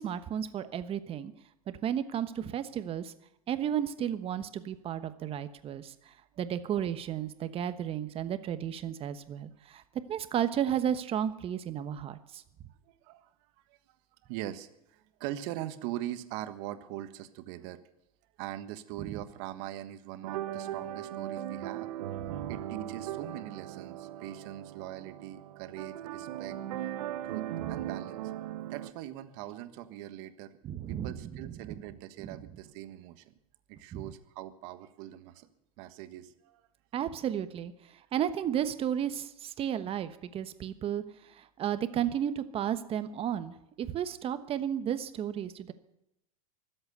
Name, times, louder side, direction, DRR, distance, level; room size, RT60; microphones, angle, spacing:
voice 1, 0.0-1.3 1.7-3.1 3.5-9.8 10.1-12.4 19.0-19.2 22.4-22.5 27.6-27.7 30.6-31.3 31.7-31.8 33.9-34.1 36.9-37.7 38.1-45.7, right 9 dB, 30° right, 11 dB, 1.1 m, -33 dB
voice 2, 12.9-13.3 13.7-13.8 14.2-17.8 18.4-26.6 27.2-28.2 28.7-30.6 30.9-33.3 33.7-35.5 35.8-36.6, right 13 dB, 55° right, 11 dB, 1.4 m, -42 dB
sound 1, 20.2-28.9, right 12 dB, 70° right, 1.2 m, -38 dB
23.5 x 8.0 x 6.8 m, 0.85 s
hypercardioid pair, 120°, 20 cm